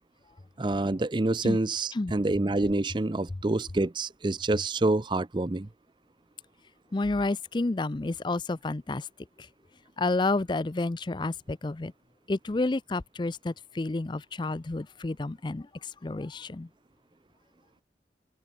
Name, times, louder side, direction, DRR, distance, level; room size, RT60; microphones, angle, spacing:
voice 1, 0.6-5.7, right 2 dB, 25° right, 0.5 m, -27 dB
voice 2, 6.9-9.1 9.4-9.5 10.0-11.9 12.3-16.7, left 2 dB, 25° left, 0.4 m, -30 dB
head